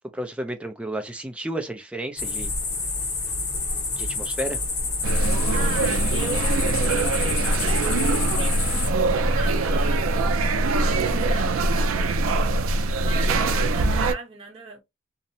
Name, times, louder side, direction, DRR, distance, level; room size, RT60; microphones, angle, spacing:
voice 1, 0.1-2.5 4.0-4.6, right 1 dB, 5° right, 0.3 m, -32 dB
sound 1, 2.2-8.9, left 3 dB, 90° left, 1.3 m, -28 dB
sound 2, 5.0-14.1, right 2 dB, 80° right, 0.4 m, -22 dB
voice 2, 5.5-6.8 7.2-12.1 13.0-14.8, right 3 dB, 30° right, 0.9 m, -37 dB
2.7 x 2.0 x 2.6 m
head